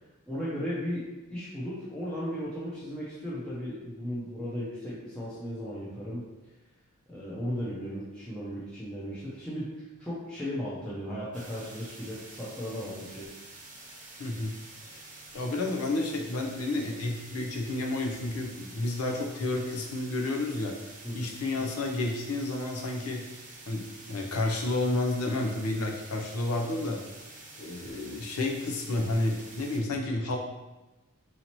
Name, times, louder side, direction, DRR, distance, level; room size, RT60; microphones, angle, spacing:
voice 1, 0.3-6.2 7.1-13.3 21.0-21.3, equal, 5° left, -10 dB, 0.6 m, -36 dB
sound 1, 11.3-29.8, right 2 dB, 35° right, 0.8 m, -48 dB
voice 2, 14.2-14.5 15.3-20.7 21.1-23.2 23.7-27.0 27.6-30.4, left 2 dB, 80° left, 1 dB, 0.6 m, -30 dB
4.0 x 2.8 x 2.9 m, 1.1 s
head